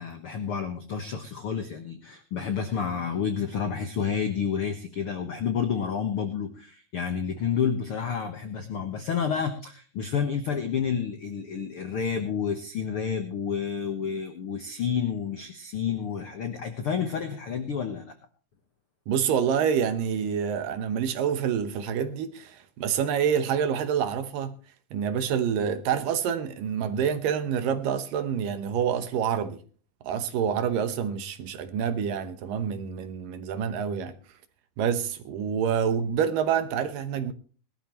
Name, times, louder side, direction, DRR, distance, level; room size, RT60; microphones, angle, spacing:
voice 1, 0.0-18.1, left 7 dB, 80° left, 1.2 m, -30 dB
voice 2, 19.1-24.5 24.9-29.6 30.0-34.1 34.8-37.3, right 8 dB, 70° right, 2.4 m, -27 dB
20.0 x 13.0 x 3.0 m
omnidirectional pair, 4.5 m